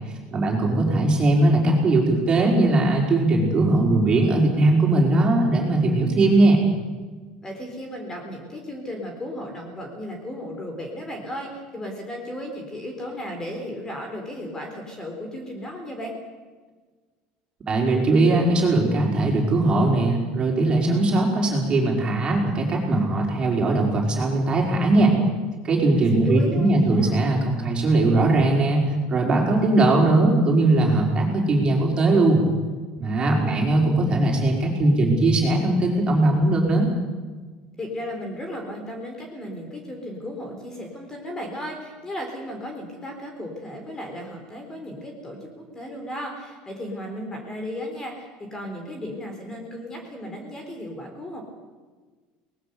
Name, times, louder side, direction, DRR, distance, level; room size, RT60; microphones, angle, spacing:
voice 1, 0.3-6.6 17.7-25.1 25.6-32.4 33.0-36.9, right 2 dB, 25° right, -1 dB, 5.0 m, -20 dB
voice 2, 7.4-16.1 25.9-27.2 37.8-51.4, left 1 dB, 15° left, 3 dB, 3.9 m, -35 dB
23.0 x 20.0 x 6.9 m, 1.4 s
cardioid pair, 145°, 3 cm